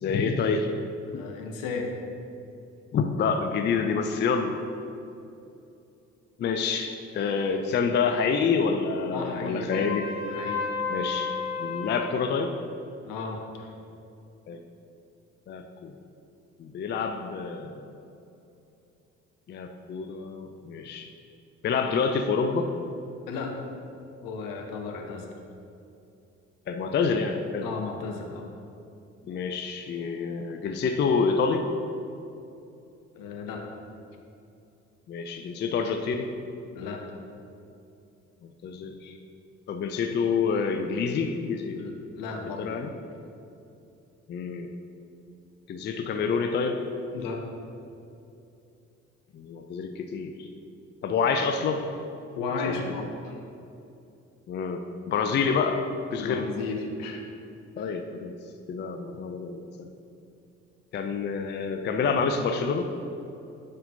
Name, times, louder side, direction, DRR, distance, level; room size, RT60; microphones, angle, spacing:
voice 1, 0.0-0.7 1.1-1.3 2.9-4.6 6.4-10.1 10.9-12.5 14.5-14.6 15.5-15.9 16.6-17.9 19.5-21.1 21.6-22.7 26.7-27.7 29.3-31.6 35.1-36.3 38.4-39.2 39.7-41.9 42.6-42.9 44.3-44.7 45.7-46.8 49.3-50.5 51.0-51.8 52.6-52.8 54.5-55.8 56.1-56.5 57.8-58.3 58.7-59.7 60.9-62.8, left 5 dB, 30° left, 5 dB, 0.4 m, -27 dB
voice 2, 1.1-1.9 9.1-9.9 10.3-10.7 13.0-13.7 23.3-23.6 24.2-25.3 27.6-28.5 33.1-33.7 36.7-37.0 41.8-42.7 47.1-47.4 52.4-53.4 56.2-57.2 57.8-57.9, left 4 dB, 60° left, 2 dB, 0.9 m, -34 dB
Trumpet, 9.7-12.0, left 4 dB, 90° left, 0.9 m, -32 dB
9.6 x 4.3 x 2.7 m, 2.7 s
hypercardioid pair, 50°, 38 cm